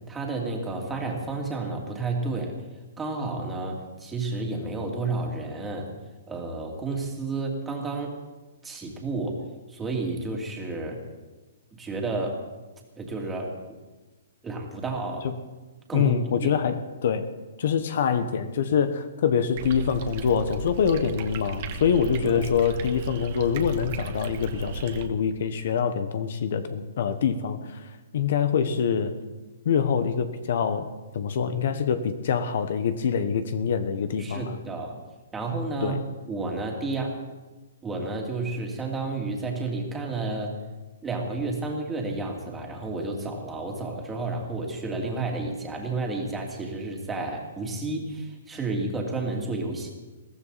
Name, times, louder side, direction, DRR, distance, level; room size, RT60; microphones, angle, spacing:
voice 1, 0.1-2.5 3.0-5.9 6.3-8.2 8.6-9.4 9.7-11.0 11.8-12.4 13.0-13.5 14.4-15.3 15.9-16.1 16.4-16.5 22.2-22.5 34.2-35.0 35.3-36.0 36.3-37.2 37.8-40.6 41.0-49.9, right 3 dB, 10° right, 0 dB, 2.7 m, -31 dB
voice 2, 15.9-17.3 17.6-29.1 29.6-30.9 31.1-34.6 35.8-36.0, left 7 dB, 55° left, 10 dB, 1.2 m, -25 dB
sound 1, 19.6-25.1, right 5 dB, 40° right, 1.4 m, -36 dB
22.0 x 15.5 x 4.2 m, 1.2 s
hypercardioid pair, 155°, 0 cm